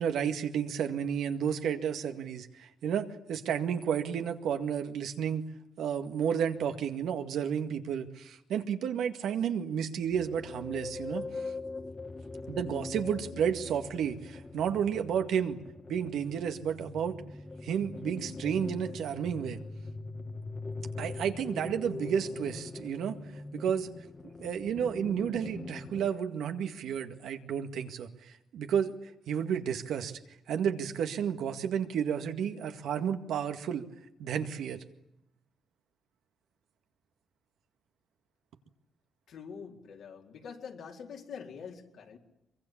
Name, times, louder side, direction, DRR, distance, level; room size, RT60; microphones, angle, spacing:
voice 1, 0.0-5.4 5.8-11.2 12.5-15.6 15.9-17.2 17.6-19.6 21.0-23.2 23.5-23.9 24.2-30.2 30.5-33.9 34.2-34.8, right 8 dB, 80° right, 7 dB, 2.0 m, -32 dB
sound 1, 10.1-26.1, left 3 dB, 30° left, 1.5 m, -42 dB
voice 2, 39.3-42.2, left 6 dB, 70° left, 1 dB, 4.2 m, -45 dB
23.5 x 23.5 x 8.7 m, 0.86 s
cardioid pair, 90°, 0 cm